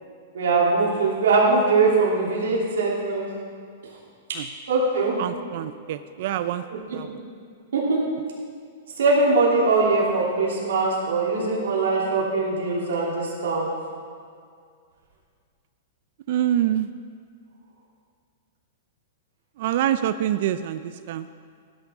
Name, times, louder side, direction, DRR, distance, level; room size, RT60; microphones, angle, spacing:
voice 1, 0.3-3.3 4.7-5.2 7.7-8.0 9.0-13.7, right 3 dB, 90° right, -5 dB, 3.0 m, -21 dB
voice 2, 5.2-6.6 6.9-7.1 16.3-16.9 19.6-21.3, right 11 dB, 55° right, 12 dB, 0.4 m, -25 dB
16.0 x 10.0 x 3.6 m, 2.1 s
hypercardioid pair, 150°, 0 cm